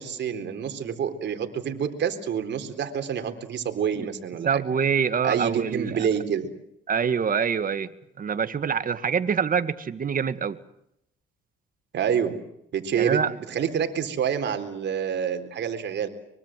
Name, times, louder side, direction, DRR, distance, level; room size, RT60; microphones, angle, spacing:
voice 1, 0.0-4.6 5.2-6.5 11.9-12.4 12.7-13.2 13.5-16.1, right 8 dB, 65° right, 6 dB, 4.0 m, -27 dB
voice 2, 4.4-6.1 6.9-7.9 8.2-10.6 13.0-13.3, right 6 dB, 45° right, 12 dB, 2.0 m, -25 dB
24.5 x 23.5 x 7.7 m, 0.78 s
cardioid pair, 90°, 20 cm